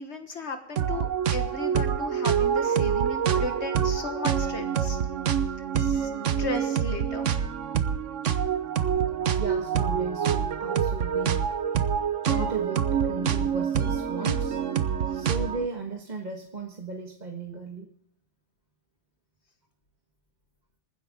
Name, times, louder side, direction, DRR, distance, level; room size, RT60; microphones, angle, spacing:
voice 1, 0.0-5.0 5.8-6.1 6.4-7.3, left 2 dB, 65° left, 6 dB, 1.7 m, -35 dB
sound 1, 0.8-15.7, right 8 dB, 85° right, 1.3 m, -26 dB
voice 2, 9.4-11.5 12.3-14.6 15.1-17.9, right 3 dB, 35° right, 2 dB, 1.6 m, -35 dB
26.5 x 10.0 x 3.7 m, 0.68 s
omnidirectional pair, 1.2 m